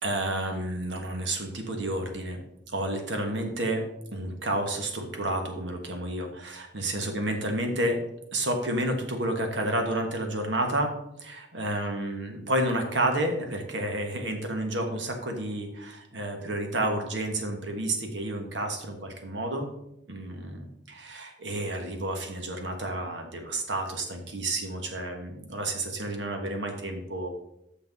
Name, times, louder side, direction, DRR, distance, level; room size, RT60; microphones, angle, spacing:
voice 1, 0.0-2.4 2.7-3.8 4.1-8.0 8.3-10.9 11.2-19.7 20.1-27.3, right 1 dB, 85° right, 4 dB, 1.5 m, -30 dB
6.5 x 6.1 x 5.3 m, 0.81 s
head